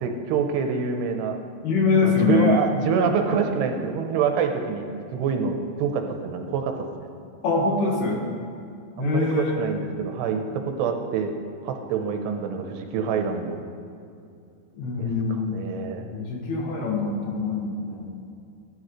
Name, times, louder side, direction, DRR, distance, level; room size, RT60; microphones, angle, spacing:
voice 1, 0.0-1.4 2.0-4.9 5.1-7.1 9.0-11.3 11.6-13.6 15.0-16.1, right 6 dB, 85° right, 4 dB, 2.9 m, -26 dB
voice 2, 1.6-2.7 7.4-8.2 9.0-9.6 14.8-15.6 16.1-18.1, left 4 dB, 70° left, -1 dB, 3.5 m, -24 dB
15.5 x 12.0 x 3.2 m, 2.5 s
omnidirectional pair, 4.9 m